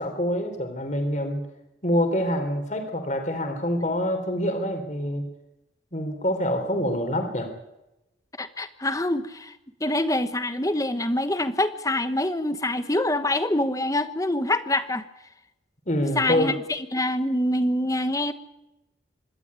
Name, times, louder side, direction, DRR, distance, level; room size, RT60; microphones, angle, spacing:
voice 1, 0.0-1.4 1.8-5.2 5.9-7.5 15.9-16.5, equal, 40° left, 6 dB, 3.5 m, -26 dB
voice 2, 8.4-15.0 16.1-18.3, left 1 dB, 15° left, 12 dB, 1.1 m, -25 dB
25.5 x 12.5 x 9.8 m, 0.93 s
head